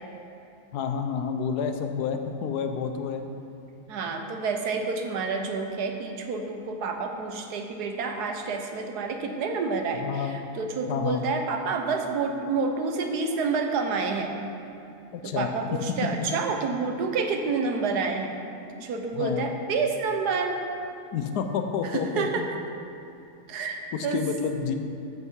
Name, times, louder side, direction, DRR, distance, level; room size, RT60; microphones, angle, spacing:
voice 1, 0.7-3.2 10.0-10.4 10.9-11.2 15.1-15.5 19.1-19.4 21.1-22.5 23.9-24.7, left 6 dB, 80° left, 6 dB, 1.3 m, -29 dB
voice 2, 3.9-14.3 15.2-18.4 18.8-20.6 21.8-22.4 23.5-24.2, right 4 dB, 80° right, 4 dB, 1.4 m, -29 dB
13.5 x 5.6 x 4.7 m, 2.7 s
omnidirectional pair, 1.7 m